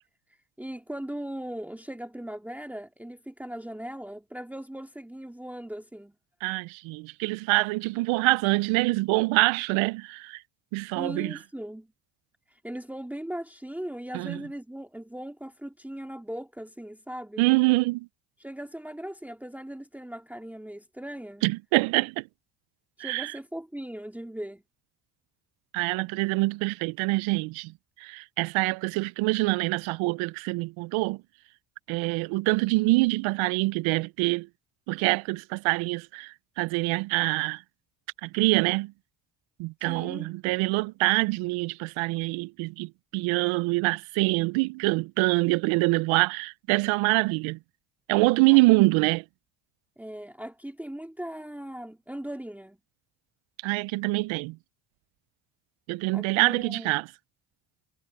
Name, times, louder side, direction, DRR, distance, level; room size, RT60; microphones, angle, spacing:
voice 1, 0.6-6.2 10.9-11.9 12.5-17.5 18.4-21.4 23.0-24.6 39.9-40.3 48.5-48.6 50.0-52.8 56.1-57.0, right 1 dB, 5° right, 2.1 m, -39 dB
voice 2, 6.4-10.4 10.7-11.4 14.1-14.4 17.4-18.1 21.4-22.2 23.0-23.3 25.7-31.2 31.9-34.5 34.9-37.6 38.2-38.9 39.6-47.6 48.1-49.2 53.6-54.6 55.9-57.1, right 24 dB, 85° right, 0.6 m, -25 dB
cardioid pair, 100°, 46 cm